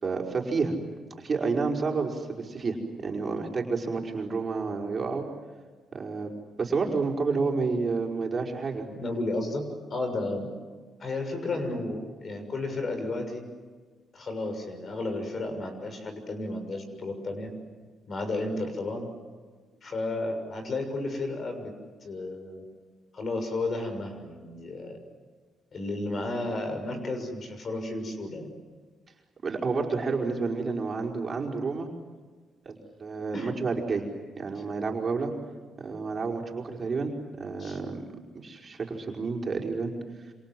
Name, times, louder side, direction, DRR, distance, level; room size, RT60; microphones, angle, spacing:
voice 1, 0.0-0.8 1.2-2.8 3.0-5.2 5.9-6.3 6.6-8.9 29.4-31.9 32.6-34.0 34.4-35.3 35.8-38.0 38.3-39.9, right 4 dB, 40° right, 0 dB, 5.1 m, -30 dB
voice 2, 8.9-10.6 11.0-13.5 14.1-17.5 18.1-19.1 19.8-21.7 22.0-22.6 23.1-24.9 25.7-28.5 33.3-33.7 34.5-34.6 37.6-37.8, left 2 dB, 45° left, 6 dB, 6.6 m, -33 dB
27.5 x 27.5 x 7.8 m, 1.5 s
cardioid pair, 90°, 0 cm